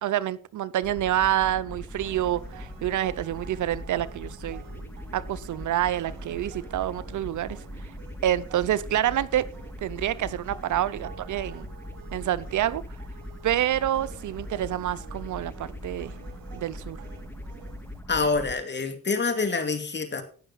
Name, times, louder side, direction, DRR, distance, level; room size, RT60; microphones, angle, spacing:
voice 1, 0.0-4.6 5.1-7.6 8.2-9.5 9.8-11.7 12.1-12.8 13.4-16.1 16.5-17.0, right 12 dB, 60° right, 0.7 m, -27 dB
sound 1, 0.8-18.5, left 1 dB, 5° left, 2.1 m, -41 dB
sound 2, 2.0-18.0, right 10 dB, 80° right, 1.4 m, -50 dB
voice 2, 18.1-20.2, left 4 dB, 30° left, 2.4 m, -26 dB
17.5 x 6.6 x 4.1 m
supercardioid pair, 65°, 34 cm